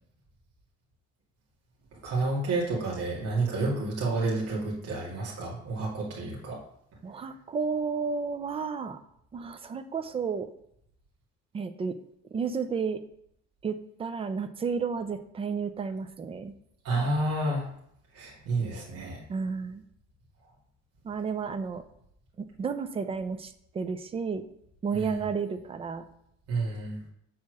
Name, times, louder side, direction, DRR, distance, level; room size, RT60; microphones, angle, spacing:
voice 1, 1.9-6.6 16.8-17.6 18.1-19.2 24.9-25.1 26.5-27.0, right 2 dB, 55° right, -5 dB, 2.3 m, -30 dB
voice 2, 7.0-9.0 9.3-10.5 11.5-12.0 12.3-13.0 13.6-16.5 19.3-19.8 21.0-21.8 22.4-24.4 24.8-26.1, right 5 dB, 20° right, 10 dB, 0.4 m, -32 dB
6.5 x 4.3 x 6.1 m, 0.73 s
cardioid pair, 160°, 29 cm